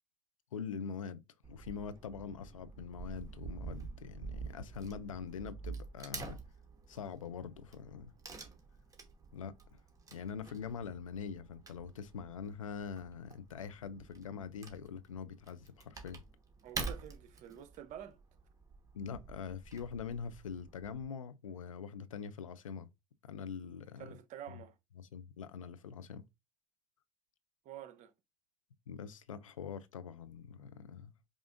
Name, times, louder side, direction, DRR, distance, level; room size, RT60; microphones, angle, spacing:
voice 1, 0.5-1.2 1.5-6.4 6.9-8.1 9.3-9.5 10.1-16.2 18.9-22.9 23.2-24.2 24.5-24.6 25.0-26.2 28.9-31.1, left 6 dB, 90° left, 0.4 m, -44 dB
Wood / Tearing, 1.4-21.0, right 4 dB, 20° right, 1.2 m, -48 dB
voice 2, 16.6-18.2 24.0-24.8 27.6-28.1, right 10 dB, 50° right, 0.7 m, -48 dB
4.9 x 2.4 x 2.5 m
hypercardioid pair, 70°, 16 cm